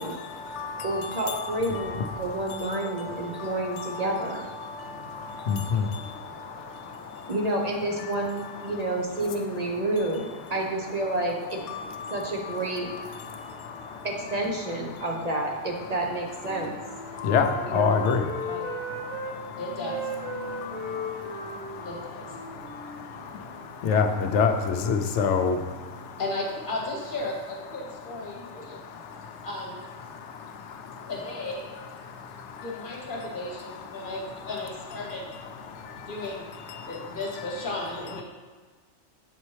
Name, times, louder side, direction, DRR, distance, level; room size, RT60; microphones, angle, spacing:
voice 1, 0.0-7.4 8.0-8.9 9.3-9.4 9.8-9.9 11.6-14.1 14.9-15.1 15.8-15.9 17.0-19.8 20.3-26.2 28.3-29.5 30.0-31.1 32.0-33.0 33.6-34.5 35.0-37.2 37.4-37.6, left 5 dB, 70° left, 6 dB, 0.8 m, -31 dB
voice 2, 0.8-4.4 7.3-11.6 12.1-12.9 14.0-16.8 17.7-18.0 28.5-28.6, right 2 dB, 40° right, 0 dB, 0.6 m, -29 dB
Wind instrument woodwind instrument, 16.4-19.3 19.8-23.7, right 1 dB, 85° right, 1.5 m, -37 dB
voice 3, 19.6-20.1 21.8-22.3 26.2-28.8 29.4-29.8 31.1-31.7 32.6-35.3 36.1-36.5 36.8-38.2, left 2 dB, 45° left, -2 dB, 1.2 m, -34 dB
7.4 x 4.2 x 3.2 m, 1.4 s
omnidirectional pair, 1.3 m